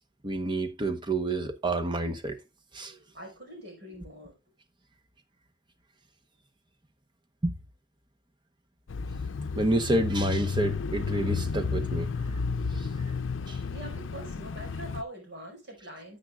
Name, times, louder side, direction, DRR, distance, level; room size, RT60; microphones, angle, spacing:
voice 1, 0.2-2.4 2.7-3.0 7.4-7.5 9.5-12.1 12.7-12.9 13.5-13.6, right 2 dB, 25° right, 1.1 m, -29 dB
voice 2, 3.1-4.4 13.7-16.2, right 1 dB, 60° right, 5.1 m, -43 dB
Bicycle / Mechanisms, 8.9-15.0, left 5 dB, 90° left, 0.5 m, -32 dB
13.0 x 7.7 x 2.4 m
head